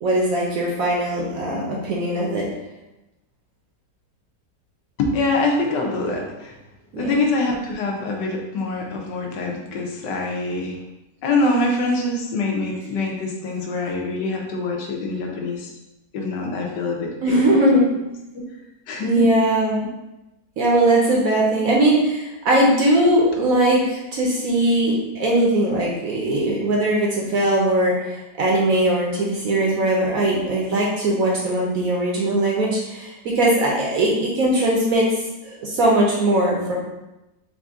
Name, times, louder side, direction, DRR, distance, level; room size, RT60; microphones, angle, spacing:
voice 1, 0.0-2.5 6.9-7.1 17.2-17.9 19.0-19.8 20.6-36.7, right 1 dB, 65° right, -2 dB, 1.0 m, -20 dB
voice 2, 5.0-6.5 7.0-10.8 11.2-15.7 16.1-17.8 18.9-19.4, left 2 dB, 75° left, 1 dB, 1.3 m, -24 dB
4.2 x 2.5 x 3.5 m, 0.96 s
omnidirectional pair, 1.9 m